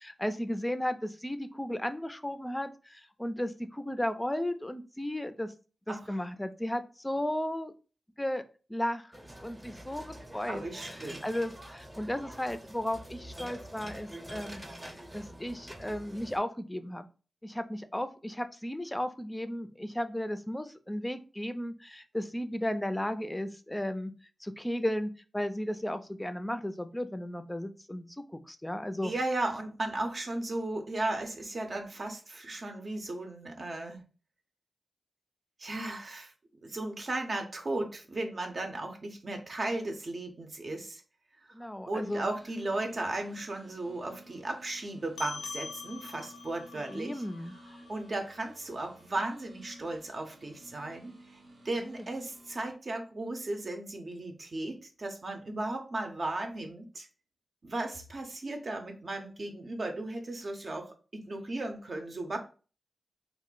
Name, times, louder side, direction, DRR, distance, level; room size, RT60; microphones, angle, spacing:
voice 1, 0.0-5.5 5.9-7.7 8.2-8.4 8.7-9.1 9.4-14.6 15.1-17.1 17.4-24.1 24.4-29.1 41.5-42.3 46.7-47.5, left 1 dB, 15° left, 10 dB, 0.4 m, -35 dB
sound 1, 9.1-16.4, right 1 dB, 20° right, 0.7 m, -46 dB
voice 2, 10.5-11.2 29.0-34.0 35.6-36.3 36.6-41.0 41.9-47.2 47.9-51.4 51.6-57.1 57.6-62.4, right 2 dB, 55° right, 4 dB, 0.7 m, -36 dB
sound 2, 42.0-52.7, equal, 80° right, 1.0 m, -55 dB
sound 3, 45.2-50.0, left 4 dB, 85° left, 0.4 m, -46 dB
2.5 x 2.0 x 3.7 m, 0.36 s
cardioid pair, 50°, 0 cm